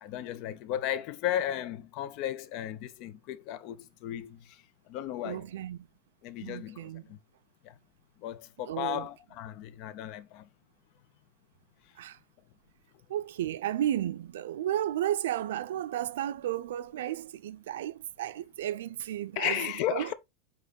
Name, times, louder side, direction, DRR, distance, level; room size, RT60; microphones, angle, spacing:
voice 1, 0.0-4.6 4.9-5.5 6.2-7.2 7.6-7.7 8.2-10.5 19.4-20.1, left 11 dB, 35° left, 0.6 m, -35 dB
voice 2, 5.2-5.9 6.4-7.0 8.6-9.1 12.0-12.2 13.1-19.6 19.9-20.1, right 12 dB, 85° right, 0.5 m, -33 dB
8.5 x 3.0 x 4.0 m
supercardioid pair, 175°, 0 cm